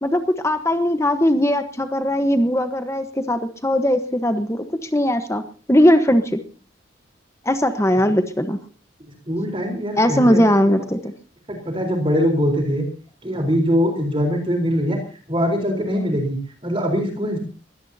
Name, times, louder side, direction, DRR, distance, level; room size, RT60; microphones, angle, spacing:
voice 1, 0.0-5.4 5.7-6.4 7.4-8.6 10.0-11.1, equal, 15° left, 8 dB, 1.2 m, -19 dB
voice 2, 9.3-10.8 11.5-12.8 13.2-15.0 15.3-17.4, equal, 25° right, 3 dB, 4.1 m, -22 dB
22.5 x 17.0 x 2.8 m, 0.37 s
head